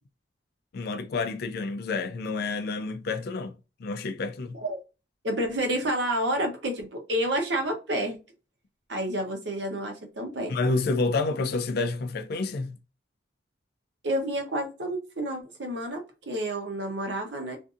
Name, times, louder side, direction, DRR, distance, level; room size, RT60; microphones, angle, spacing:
voice 1, 0.7-4.6 10.5-12.8, left 3 dB, 60° left, 0.4 m, -29 dB
voice 2, 5.2-8.2 8.9-10.5 14.0-17.6, right 1 dB, 70° right, 0.8 m, -29 dB
2.5 x 2.5 x 2.4 m
head